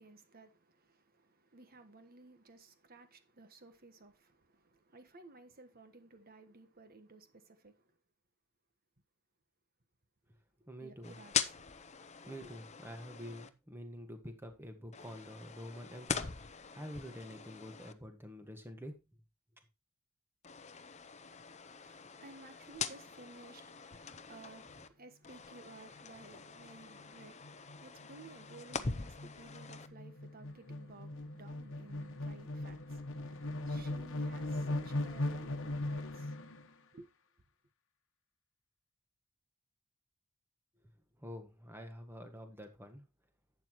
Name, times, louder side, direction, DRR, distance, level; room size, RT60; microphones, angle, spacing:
voice 1, 0.0-7.8 10.8-11.4 12.2-12.5 21.6-36.3 36.9-37.1, right 3 dB, 40° right, 1.4 m, -56 dB
voice 2, 10.7-11.2 12.2-16.3 16.7-18.9 41.2-43.0, equal, 10° right, 1.6 m, -47 dB
sound 1, 11.0-13.5 14.9-17.9 20.4-24.9 25.2-29.9, left 6 dB, 30° left, 0.7 m, -43 dB
sound 2, 26.0-26.3 26.6-26.7 27.0-36.7, left 1 dB, 60° left, 1.2 m, -40 dB
11.5 x 8.4 x 3.1 m
head